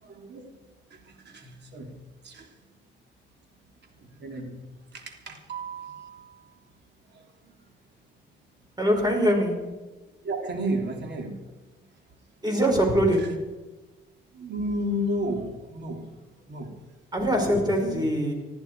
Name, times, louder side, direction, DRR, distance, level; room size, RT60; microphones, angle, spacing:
voice 1, 0.0-0.6 0.9-1.9 2.2-2.7 4.0-6.7 7.1-7.5 10.2-11.8 12.1-12.2 13.2-13.3 14.3-16.1 16.5-16.7 17.3-18.0, right 1 dB, 60° right, 3 dB, 3.3 m, -34 dB
voice 2, 8.8-9.5 12.4-13.3 17.1-18.3, equal, 20° right, 2 dB, 5.3 m, -22 dB
20.5 x 14.0 x 4.8 m, 1.2 s
cardioid pair, 90°, 20 cm